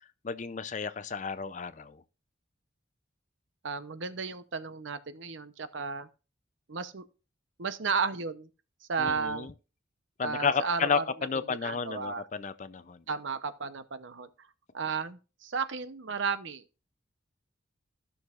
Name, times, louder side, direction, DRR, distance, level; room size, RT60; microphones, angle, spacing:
voice 1, 0.2-2.0 9.0-9.5 10.2-13.0, left 6 dB, 35° left, 0.4 m, -32 dB
voice 2, 3.6-6.1 6.7-7.0 7.6-8.5 8.8-9.5 10.2-11.0 11.5-12.2 13.1-14.5 14.7-16.6, right 5 dB, 70° right, 0.7 m, -33 dB
14.5 x 6.3 x 2.4 m
head